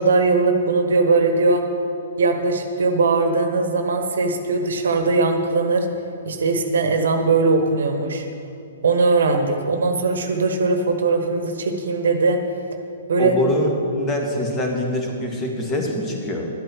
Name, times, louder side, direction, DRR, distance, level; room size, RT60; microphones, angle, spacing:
voice 1, 0.0-1.6 2.2-5.9 6.2-8.3 8.8-12.4 13.1-13.3, right 3 dB, 65° right, 6 dB, 1.1 m, -20 dB
voice 2, 13.2-16.5, left 1 dB, 20° left, 1 dB, 2.0 m, -24 dB
11.5 x 8.8 x 7.0 m, 2.7 s
figure-of-eight pair, 120°, 0 cm